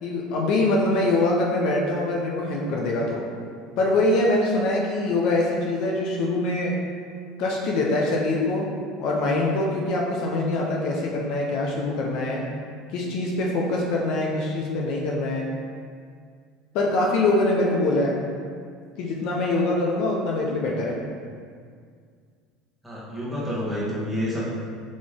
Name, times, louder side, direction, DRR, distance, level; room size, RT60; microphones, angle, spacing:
voice 1, 0.0-3.2 3.8-6.8 7.4-8.7 9.0-12.5 12.9-15.5 16.7-18.2 19.0-21.0, left 2 dB, 65° left, -2 dB, 0.6 m, -24 dB
voice 2, 22.8-24.4, equal, ahead, -8 dB, 1.4 m, -28 dB
4.2 x 3.1 x 3.6 m, 2.1 s
supercardioid pair, 105°, 0 cm